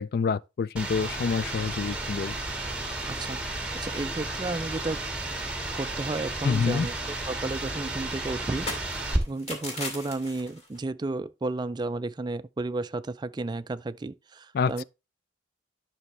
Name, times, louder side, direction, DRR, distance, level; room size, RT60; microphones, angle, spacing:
voice 1, 0.0-2.3 6.4-6.9 14.5-14.7, left 5 dB, 55° left, 0.3 m, -27 dB
sound 1, 0.8-9.2, right 2 dB, 5° right, 1.7 m, -33 dB
sound 2, 2.1-2.7 3.0-3.1 3.5-3.6 3.9-4.5 4.8-6.2 6.4-10.8, left 2 dB, 35° left, 2.5 m, -41 dB
voice 2, 3.1-5.0 5.7-8.7 9.3-14.8, right 2 dB, 20° right, 0.3 m, -33 dB
11.0 x 6.1 x 3.3 m
head